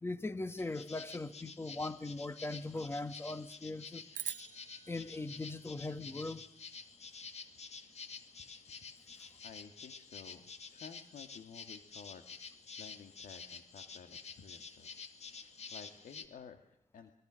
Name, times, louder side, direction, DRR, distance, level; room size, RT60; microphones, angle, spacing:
voice 1, 0.0-4.0 4.9-6.4, left 2 dB, 20° left, 1.4 m, -40 dB
sound 1, 0.6-16.3, left 5 dB, 55° left, 2.3 m, -50 dB
sound 2, 4.1-6.6, right 9 dB, 75° right, 0.9 m, -46 dB
voice 2, 9.4-12.2 12.8-17.1, left 7 dB, 85° left, 2.0 m, -54 dB
26.0 x 22.0 x 6.4 m
wide cardioid pair, 115°, 13 cm